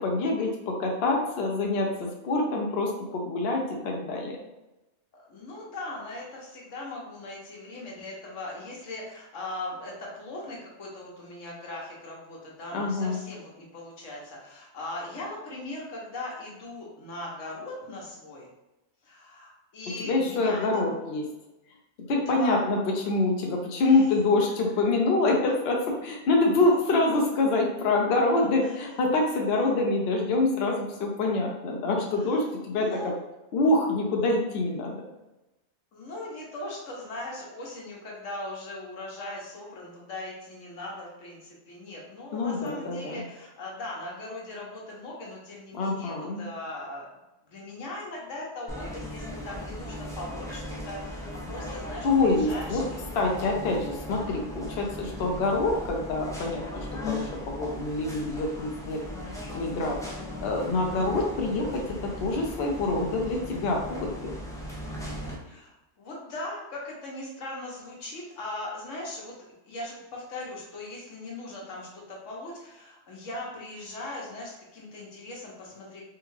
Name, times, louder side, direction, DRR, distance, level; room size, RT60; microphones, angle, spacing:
voice 1, 0.0-4.4 12.7-13.2 20.0-21.2 22.1-22.8 23.1-25.8 26.0-33.1 33.5-35.0 42.3-43.1 45.7-46.5 52.0-52.8 53.1-60.0 60.4-64.3, left 2 dB, 60° left, 0 dB, 0.8 m, -26 dB
voice 2, 5.1-18.5 19.0-20.7 22.3-22.6 23.8-24.1 26.9-27.0 28.6-29.0 29.4-29.7 32.2-32.4 32.7-33.1 35.9-47.1 47.5-53.0 65.4-69.4 69.6-76.0, left 2 dB, 80° left, -3 dB, 1.2 m, -39 dB
sound 1, 48.7-65.3, left 1 dB, 5° left, 0.3 m, -38 dB
3.4 x 2.3 x 3.1 m, 0.99 s
omnidirectional pair, 1.3 m